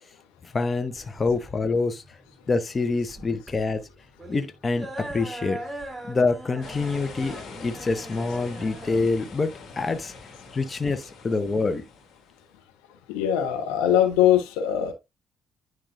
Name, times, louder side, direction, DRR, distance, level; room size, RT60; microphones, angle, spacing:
voice 1, 0.4-2.2 2.5-3.8 4.3-5.6 6.0-7.4 7.6-10.1 10.5-11.8, left 3 dB, 35° left, 0.8 m, -26 dB
sound 1, 1.0-11.0, right 1 dB, 10° right, 2.6 m, -41 dB
sound 2, 6.6-12.5, left 4 dB, 55° left, 2.4 m, -44 dB
voice 2, 13.1-14.9, left 10 dB, 75° left, 1.0 m, -21 dB
10.0 x 3.8 x 2.5 m
hypercardioid pair, 45°, 0 cm